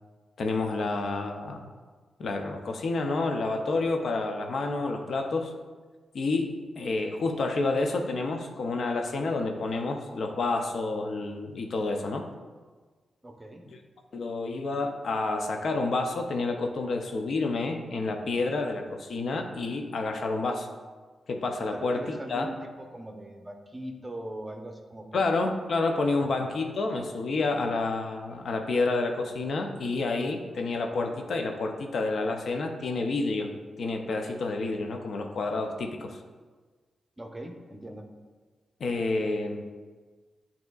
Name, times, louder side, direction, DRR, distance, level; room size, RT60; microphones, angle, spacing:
voice 1, 0.4-1.6 2.2-5.5 6.1-12.2 13.7-13.8 14.1-20.7 21.3-22.5 25.1-33.5 33.8-36.2 38.8-39.7, left 3 dB, 65° left, 4 dB, 0.5 m, -29 dB
voice 2, 13.2-13.6 21.7-25.3 26.3-26.4 37.2-38.0, right 1 dB, 20° right, 4 dB, 0.7 m, -41 dB
7.7 x 2.7 x 2.3 m, 1.4 s
supercardioid pair, 45°, 0 cm